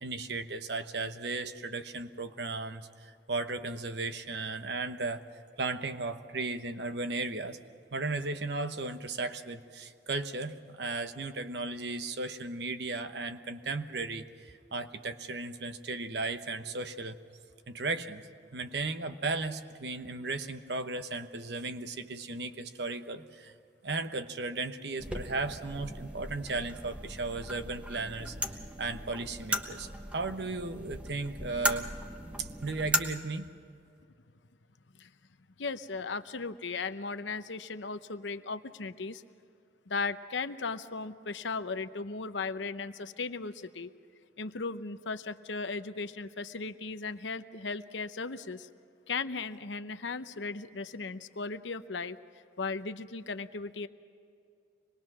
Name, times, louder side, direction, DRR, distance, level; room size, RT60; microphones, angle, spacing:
voice 1, 0.0-5.2 5.6-7.6 7.9-17.2 17.7-18.2 18.5-23.5 23.8-28.3 28.8-31.9 32.4-33.5, right 3 dB, 65° right, 9 dB, 1.0 m, -35 dB
sound 1, 25.0-33.0, right 1 dB, 5° right, 1.0 m, -37 dB
voice 2, 35.6-39.2 39.9-43.9 44.4-48.7 49.1-52.2 52.6-53.9, left 4 dB, 80° left, 10 dB, 0.8 m, -36 dB
25.0 x 20.5 x 6.1 m, 2.4 s
head